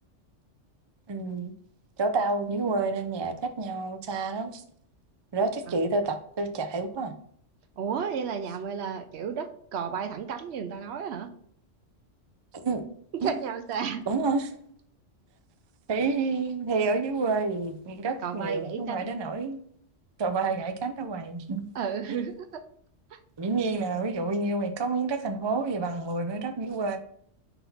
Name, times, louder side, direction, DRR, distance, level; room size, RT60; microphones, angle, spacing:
voice 1, 1.1-1.5 2.0-4.6 5.3-7.1 12.5-12.8 13.2-13.4 14.1-14.5 15.9-19.6 20.2-21.6 23.4-27.0, right 3 dB, 35° right, 0.4 m, -29 dB
voice 2, 7.8-11.3 13.1-14.0 18.2-19.1 21.7-22.6 23.1-23.2, right 7 dB, 65° right, 0.8 m, -33 dB
5.8 x 4.1 x 4.2 m
omnidirectional pair, 1.3 m